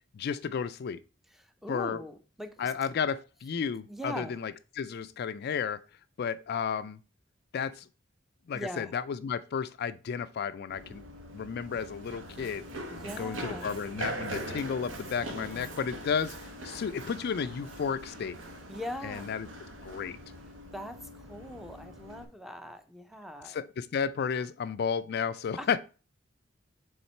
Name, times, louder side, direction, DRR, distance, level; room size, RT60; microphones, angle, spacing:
voice 1, 0.1-1.0 1.7-2.0 2.6-5.8 6.2-7.0 7.5-7.9 8.5-11.0 11.3-12.6 13.2-18.4 19.0-19.5 19.8-20.2 23.4-25.8, left 6 dB, 55° left, 0.4 m, -32 dB
voice 2, 1.4-2.7 3.9-4.4 8.5-8.9 12.9-13.7 18.7-19.3 20.7-23.6 25.6-25.8, equal, ahead, 0.6 m, -41 dB
Run, 10.7-22.2, right 1 dB, 80° right, 1.2 m, -42 dB
7.1 x 3.6 x 4.4 m
head